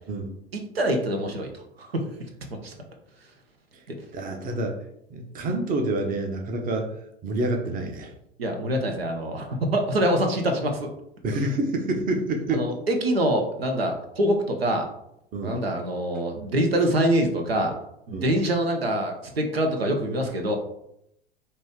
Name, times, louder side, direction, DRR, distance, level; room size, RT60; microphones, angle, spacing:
voice 1, 0.5-2.1 2.6-2.7 8.4-10.9 12.5-14.9 15.4-17.7 18.1-20.6, right 1 dB, 80° right, 4 dB, 0.9 m, -25 dB
voice 2, 4.1-4.8 5.1-6.9 7.2-8.1 11.2-12.6 15.3-15.6 18.1-18.3, right 2 dB, 30° right, 4 dB, 0.9 m, -27 dB
5.1 x 2.8 x 3.6 m, 0.76 s
figure-of-eight pair, 85°, 30 cm